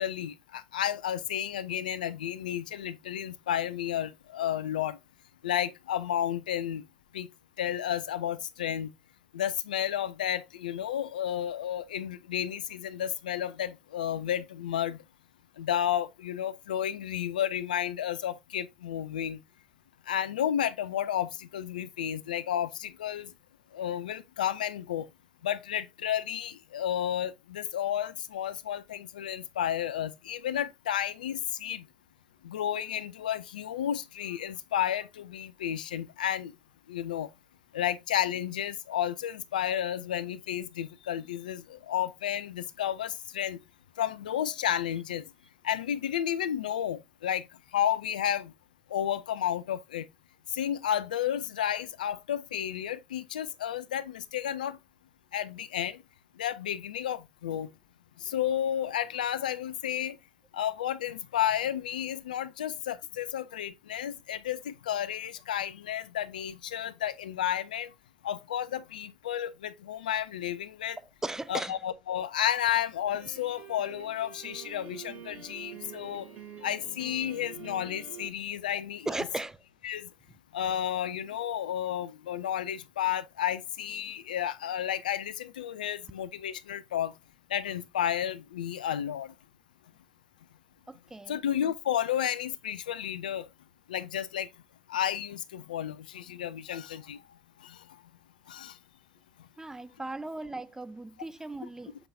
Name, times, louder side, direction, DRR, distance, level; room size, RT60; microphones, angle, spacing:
voice 1, 0.0-5.0 5.4-6.8 7.1-7.3 7.6-8.9 9.3-15.0 15.6-19.4 20.1-23.3 23.7-25.1 25.4-31.9 32.4-36.5 36.9-37.3 37.7-43.6 44.0-45.2 45.6-47.5 47.7-48.5 48.9-50.1 50.5-54.8 55.3-56.0 56.4-57.7 58.2-60.2 60.5-67.9 68.2-71.0 71.5-76.3 76.6-79.3 79.8-80.1 80.5-87.1 87.5-89.3 91.3-93.5 93.9-94.5 94.9-97.2 97.6-97.8 98.5-98.8, left 10 dB, 80° left, 0.5 m, -32 dB
voice 2, 71.2-71.8 79.1-79.6 90.9-91.4 99.6-102.0, right 2 dB, 10° right, 0.5 m, -37 dB
Piano, 73.1-78.3, right 9 dB, 50° right, 5.3 m, -46 dB
7.8 x 5.6 x 2.6 m
hypercardioid pair, 65°, 5 cm